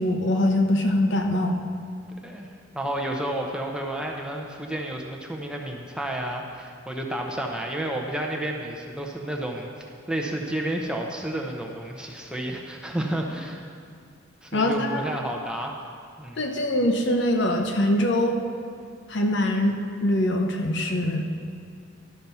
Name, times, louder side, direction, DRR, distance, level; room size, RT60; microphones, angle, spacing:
voice 1, 0.0-1.6 14.5-15.0 16.4-18.4 19.1-21.3, left 1 dB, 60° left, 3 dB, 0.9 m, -23 dB
voice 2, 2.7-13.6 14.4-15.7 16.2-16.4, right 1 dB, 5° right, 0 dB, 0.7 m, -31 dB
12.0 x 5.9 x 5.5 m, 2.2 s
head